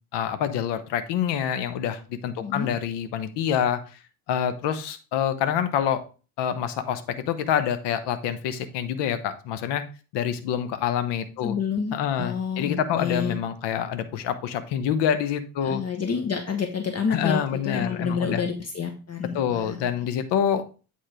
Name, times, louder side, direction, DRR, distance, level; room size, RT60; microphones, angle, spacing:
voice 1, 0.1-3.8 4.3-6.0 6.4-9.8 10.1-11.6 11.9-15.8 17.1-18.4 19.3-20.7, left 9 dB, 65° left, 11 dB, 1.1 m, -26 dB
voice 2, 11.4-13.3 15.6-19.8, left 6 dB, 35° left, 5 dB, 1.3 m, -29 dB
8.7 x 3.7 x 4.8 m, 0.35 s
hypercardioid pair, 60°, 45 cm